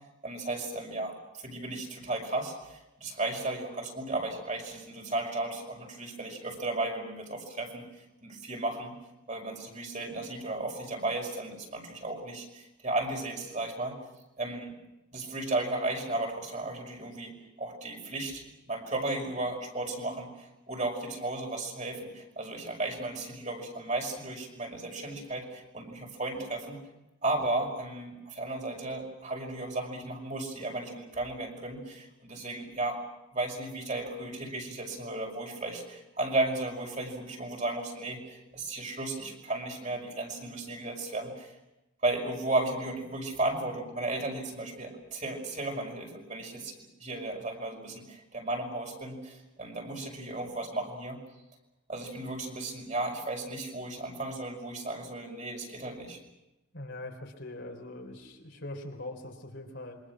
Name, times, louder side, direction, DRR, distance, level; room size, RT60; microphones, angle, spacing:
voice 1, 0.2-7.9 8.2-8.9 9.3-13.9 14.4-14.7 15.1-26.8 27.2-33.0 33.3-41.5 42.0-46.7 47.0-51.2 51.9-56.2, right 2 dB, 35° right, 1 dB, 5.7 m, -34 dB
voice 2, 56.7-60.0, left 2 dB, 60° left, 3 dB, 3.9 m, -42 dB
27.5 x 24.5 x 6.3 m, 0.94 s
head